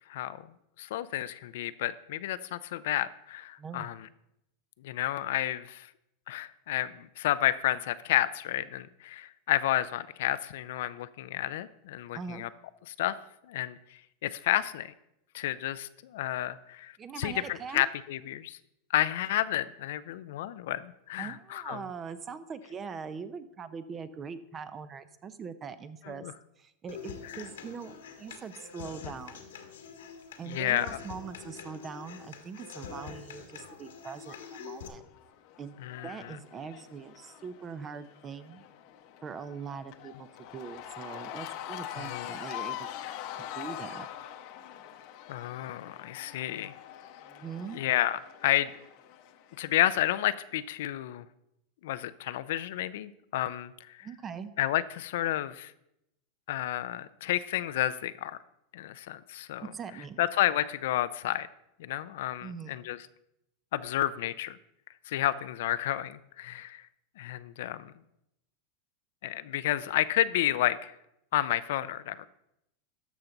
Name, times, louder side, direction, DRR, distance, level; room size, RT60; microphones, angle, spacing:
voice 1, 0.8-4.1 4.8-5.9 6.3-12.5 13.0-13.1 13.5-13.8 14.2-14.9 15.3-16.9 17.2-18.6 18.9-21.8 26.1-26.3 27.2-27.4 30.4-31.0 35.8-36.1 42.0-42.3 45.3-46.7 47.7-48.7 49.6-51.2 51.8-53.7 54.0-54.1 54.6-55.7 56.5-58.4 58.7-59.7 60.2-61.5 61.8-63.0 63.7-64.6 65.1-66.8 67.2-67.9 69.2-70.9 71.3-72.3, left 13 dB, 70° left, 15 dB, 0.4 m, -31 dB
voice 2, 3.6-3.9 12.1-12.5 17.0-17.8 21.2-26.3 26.6-29.4 30.4-35.0 35.6-35.8 36.0-38.6 39.2-42.9 43.4-44.1 47.2-47.8 54.0-54.5 59.7-60.3 62.4-62.8, right 6 dB, 25° right, 13 dB, 0.7 m, -42 dB
Human voice / Acoustic guitar, 26.9-34.9, left 6 dB, 85° left, 1.4 m, -45 dB
Cheering / Crowd, 34.8-50.1, left 12 dB, 55° left, 0.8 m, -44 dB
13.5 x 5.8 x 3.9 m, 0.83 s
hypercardioid pair, 120°, 0 cm